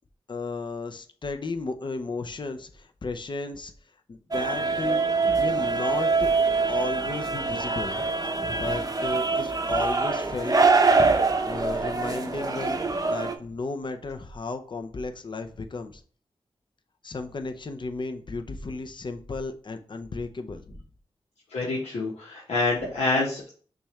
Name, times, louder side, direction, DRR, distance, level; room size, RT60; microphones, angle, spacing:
voice 1, 0.3-3.7 4.1-5.0 5.4-6.3 6.7-8.1 8.5-10.5 11.4-16.0 17.0-20.8, left 3 dB, 50° left, 6 dB, 0.6 m, -34 dB
sound 1, 4.3-13.3, right 4 dB, 35° right, 0.6 m, -24 dB
voice 2, 21.5-23.5, left 2 dB, 85° left, -4 dB, 1.0 m, -27 dB
6.0 x 2.4 x 3.2 m, 0.43 s
cardioid pair, 55°, 11 cm